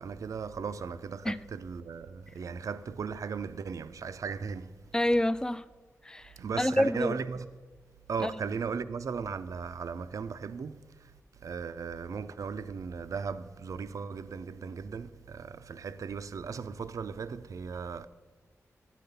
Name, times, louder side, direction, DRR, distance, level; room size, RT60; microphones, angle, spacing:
voice 1, 0.0-4.7 6.4-7.5 8.1-11.1 11.4-18.1, right 5 dB, 70° right, 0.4 m, -37 dB
voice 2, 4.9-5.6 6.0-7.1 8.2-8.3, left 1 dB, 10° left, 0.3 m, -28 dB
9.2 x 4.0 x 6.8 m
cardioid pair, 60°, 6 cm